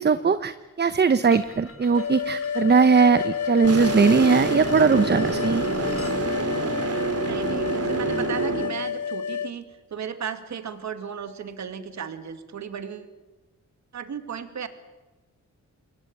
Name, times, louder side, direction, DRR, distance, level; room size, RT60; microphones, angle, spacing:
voice 1, 0.0-5.7, right 5 dB, 35° right, 13 dB, 1.0 m, -20 dB
sound 1, 1.2-6.2, left 4 dB, 50° left, 3.5 m, -45 dB
sound 2, 2.0-9.5, left 7 dB, 80° left, 1.0 m, -29 dB
sound 3, 3.6-8.7, right 4 dB, 55° right, 3.2 m, -28 dB
voice 2, 6.9-9.6 9.9-13.1 13.9-14.7, right 7 dB, 70° right, 10 dB, 2.3 m, -35 dB
28.0 x 22.0 x 8.8 m, 1.2 s
wide cardioid pair, 110°, 29 cm